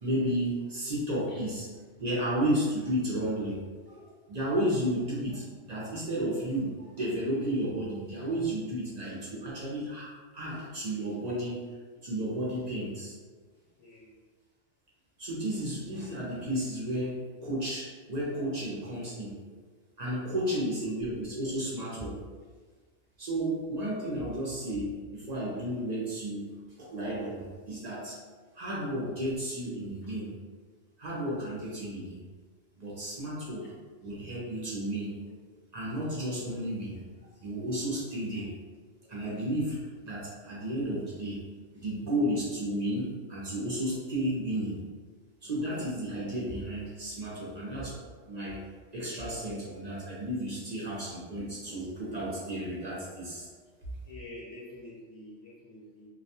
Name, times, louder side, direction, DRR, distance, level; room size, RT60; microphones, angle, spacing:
voice 1, 0.0-1.7 2.0-10.1 10.3-11.6 12.0-13.2 15.2-19.4 20.0-22.2 23.2-26.5 26.8-28.2 28.5-30.3 31.0-32.2 32.8-33.7 34.0-35.1 35.7-37.0 37.4-38.5 39.1-41.4 41.7-44.8 45.4-48.0 48.2-48.6 48.9-53.5, right 1 dB, 50° right, -6 dB, 0.5 m, -33 dB
voice 2, 54.1-56.1, left 1 dB, 70° left, -7 dB, 0.9 m, -46 dB
2.3 x 2.2 x 2.7 m, 1.4 s
omnidirectional pair, 1.3 m